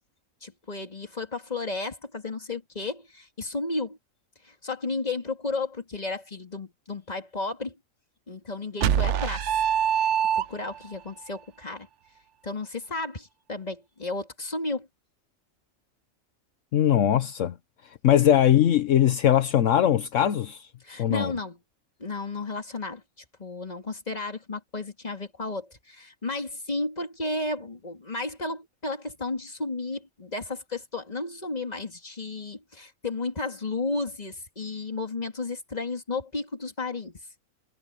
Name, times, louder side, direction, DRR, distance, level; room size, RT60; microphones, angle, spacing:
voice 1, 0.4-4.0 4.4-7.8 8.3-9.6 10.0-11.9 12.4-14.9 20.8-21.6 22.0-37.2, left 3 dB, 30° left, 2.5 m, -33 dB
sound 1, 8.8-10.9, right 9 dB, 65° right, 1.0 m, -24 dB
voice 2, 16.7-17.6 17.8-20.7 21.0-21.3, left 10 dB, 70° left, 1.2 m, -21 dB
omnidirectional pair, 1.4 m